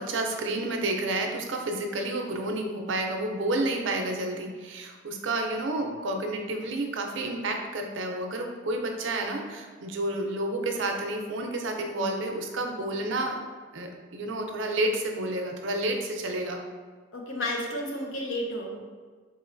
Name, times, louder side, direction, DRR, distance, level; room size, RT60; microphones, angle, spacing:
voice 1, 0.0-13.4 13.7-16.6, right 2 dB, 75° right, 3 dB, 0.5 m, -30 dB
voice 2, 17.1-18.8, left 1 dB, 80° left, 0 dB, 0.7 m, -32 dB
4.1 x 3.0 x 2.5 m, 1.5 s
head